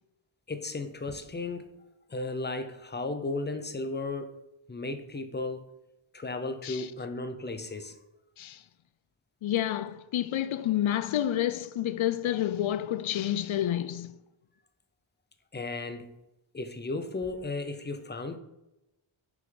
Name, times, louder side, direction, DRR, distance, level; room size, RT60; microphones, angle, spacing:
voice 1, 0.5-1.7 2.1-4.4 4.7-5.7 6.1-8.0 15.5-16.1 16.5-18.4, left 3 dB, 20° left, 0.6 m, -35 dB
voice 2, 9.4-14.1, left 12 dB, 75° left, 0.5 m, -29 dB
6.0 x 5.4 x 3.8 m
wide cardioid pair, 95°, 49 cm